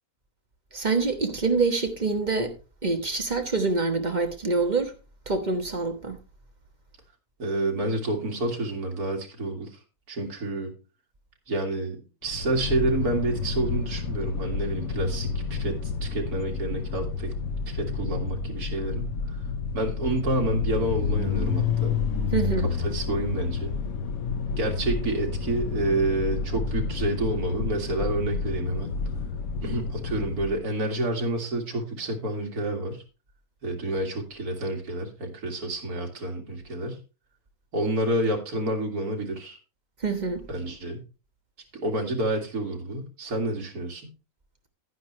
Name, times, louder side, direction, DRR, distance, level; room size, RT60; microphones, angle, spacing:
voice 1, 0.7-2.6 2.8-4.9 5.3-6.2 22.3-22.7 40.0-40.5, right 3 dB, 30° right, 1.2 m, -26 dB
voice 2, 7.4-9.8 10.1-10.7 11.5-17.3 17.7-19.4 19.7-21.9 22.8-23.7 24.6-28.9 29.6-33.0 33.6-37.0 37.7-39.6 40.5-41.0 41.7-44.1, right 1 dB, 75° right, 2.7 m, -29 dB
sound 1, 12.2-30.6, left 5 dB, 70° left, 1.2 m, -30 dB
11.0 x 9.7 x 3.2 m
omnidirectional pair, 1.6 m